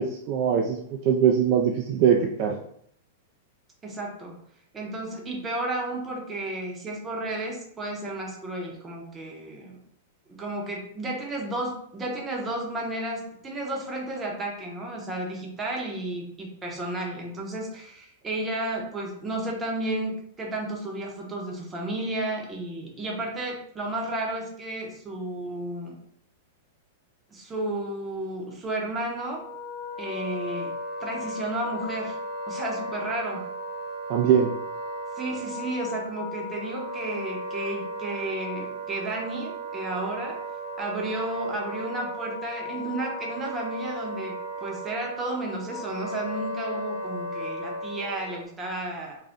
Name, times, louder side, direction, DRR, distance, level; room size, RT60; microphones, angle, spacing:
voice 1, 0.0-2.6 34.1-34.5, right 8 dB, 40° right, 1 dB, 0.3 m, -22 dB
voice 2, 3.8-4.4 4.7-9.8 10.3-26.0 27.3-29.4 30.0-30.7 31.0-32.2 32.5-33.5 35.2-40.4 40.8-49.2, right 1 dB, 15° right, -1 dB, 0.7 m, -32 dB
Wind instrument woodwind instrument, 29.3-48.4, equal, 25° left, 0.8 m, -35 dB
2.5 x 2.1 x 3.5 m, 0.67 s
supercardioid pair, 155°, 0 cm